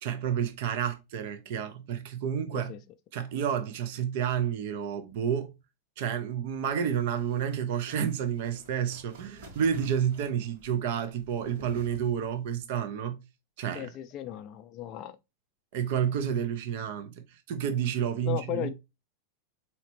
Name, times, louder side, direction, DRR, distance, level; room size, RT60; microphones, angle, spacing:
voice 1, 0.0-2.7 3.1-5.5 6.0-13.2 13.6-13.9 15.7-18.7, right 8 dB, 60° right, 0.6 m, -30 dB
sound 1, 6.5-12.6, right 1 dB, 80° right, 1.6 m, -52 dB
voice 2, 13.7-15.2 18.3-18.7, left 13 dB, 35° left, 0.4 m, -36 dB
4.2 x 2.8 x 3.0 m
supercardioid pair, 150°, 0 cm